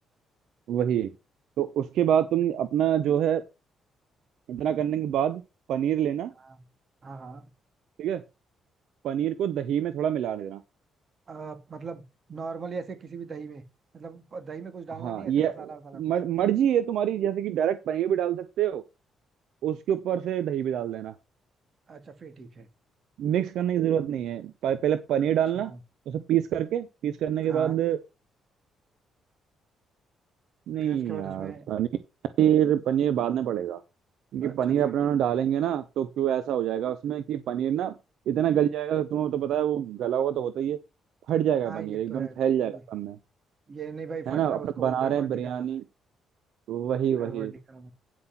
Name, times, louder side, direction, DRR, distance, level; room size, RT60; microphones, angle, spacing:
voice 1, 0.7-1.1 1.6-3.4 4.5-5.4 5.7-6.3 8.0-8.2 9.0-10.6 15.0-18.8 19.6-21.1 23.2-25.7 26.1-28.0 30.7-31.9 32.4-33.8 34.3-37.9 38.3-40.8 41.3-43.2 44.3-45.8 46.7-47.5, right 10 dB, 80° right, 0.8 m, -26 dB
voice 2, 7.0-7.5 11.3-12.0 12.3-13.6 13.9-16.0 21.9-22.7 25.2-25.3 25.5-25.8 27.5-27.8 30.8-31.7 34.4-35.0 41.6-42.4 42.6-42.8 43.7-45.8 47.2-47.9, right 5 dB, 45° right, 2.1 m, -40 dB
9.7 x 5.9 x 5.8 m
cardioid pair, 90°, 0 cm